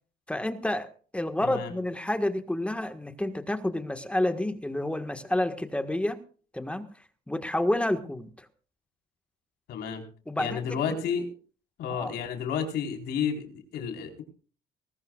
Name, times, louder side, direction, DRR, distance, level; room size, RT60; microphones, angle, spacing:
voice 1, 0.3-0.9 1.1-6.2 6.5-6.9 7.3-8.5 10.3-11.0 11.9-12.1, left 1 dB, 5° left, 8 dB, 1.5 m, -29 dB
voice 2, 1.4-1.7 9.7-10.0 10.4-11.3 11.8-14.2, left 7 dB, 75° left, 4 dB, 4.3 m, -31 dB
20.5 x 19.0 x 2.4 m, 0.40 s
cardioid pair, 110°, 17 cm